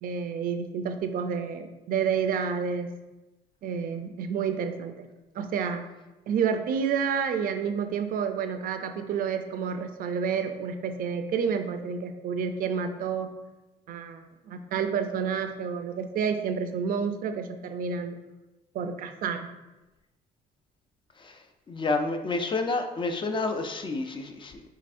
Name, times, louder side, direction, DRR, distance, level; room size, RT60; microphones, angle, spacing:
voice 1, 0.0-2.9 3.6-5.1 5.3-5.8 6.3-13.3 13.9-18.2 18.7-19.5, right 6 dB, 60° right, 7 dB, 0.5 m, -29 dB
voice 2, 21.7-24.6, left 3 dB, 30° left, 6 dB, 0.4 m, -29 dB
5.5 x 3.4 x 2.5 m, 1.0 s
cardioid pair, 110°, 17 cm